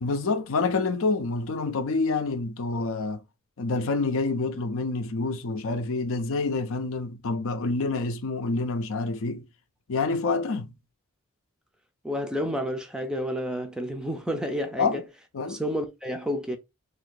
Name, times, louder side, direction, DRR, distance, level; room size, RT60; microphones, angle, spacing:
voice 1, 0.0-3.2 3.6-9.5 9.9-10.7 14.8-15.0 15.3-15.6, left 3 dB, 60° left, 0.5 m, -27 dB
voice 2, 12.0-15.0 15.5-16.6, equal, 5° right, 0.4 m, -30 dB
2.7 x 2.6 x 3.8 m
head